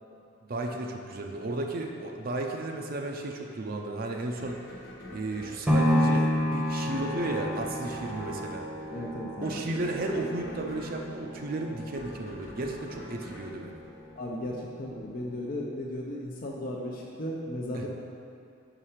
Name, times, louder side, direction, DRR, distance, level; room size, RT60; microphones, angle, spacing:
voice 1, 0.5-4.6 5.1-8.7 9.4-13.8 17.7-17.9, right 2 dB, 50° right, 2 dB, 0.5 m, -34 dB
sound 1, 4.4-14.6, left 1 dB, 75° left, 1.1 m, -46 dB
sound 2, 5.7-13.8 14.2-14.3, equal, 5° right, 0.9 m, -30 dB
voice 2, 8.9-9.7 14.1-17.9, left 1 dB, 50° left, -2 dB, 0.6 m, -35 dB
5.5 x 4.9 x 5.7 m, 2.4 s
head